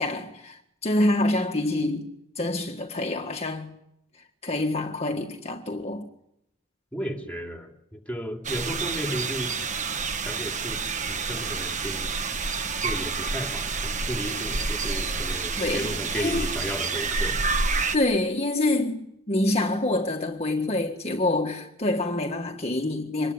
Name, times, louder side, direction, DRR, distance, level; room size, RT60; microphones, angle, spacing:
voice 1, 0.0-2.1 2.4-3.7 4.4-6.1 15.6-16.5 17.9-23.3, left 2 dB, 30° left, 1.7 m, -26 dB
voice 2, 6.9-9.5 10.2-10.8 11.1-12.1 12.8-17.4, equal, 5° left, 2.8 m, -34 dB
sound 1, 8.4-18.0, right 4 dB, 35° right, 1.3 m, -28 dB
26.0 x 21.0 x 9.8 m
head